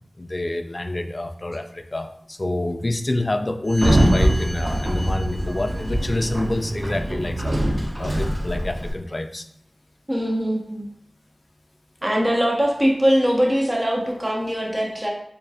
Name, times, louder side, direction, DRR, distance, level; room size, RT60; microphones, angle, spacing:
voice 1, 0.2-7.7 8.0-9.5, left 1 dB, 45° left, 7 dB, 0.4 m, -27 dB
Sliding door, 3.7-8.9, right 1 dB, 50° right, 1.1 m, -23 dB
voice 2, 10.1-10.9 12.0-15.1, equal, 20° right, -2 dB, 1.1 m, -21 dB
6.8 x 2.4 x 2.4 m, 0.71 s
wide cardioid pair, 45°, 0 cm